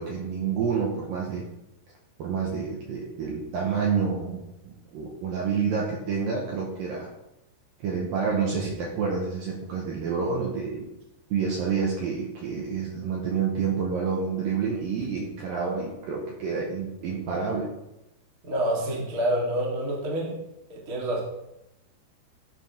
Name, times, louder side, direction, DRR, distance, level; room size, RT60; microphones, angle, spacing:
voice 1, 0.0-1.4 2.2-7.1 7.8-10.9 11.3-17.7, right 5 dB, 70° right, -3 dB, 2.4 m, -28 dB
voice 2, 18.4-20.4 20.7-21.2, right 1 dB, 50° right, -3 dB, 1.1 m, -27 dB
12.0 x 4.9 x 3.5 m, 0.90 s
omnidirectional pair, 5.0 m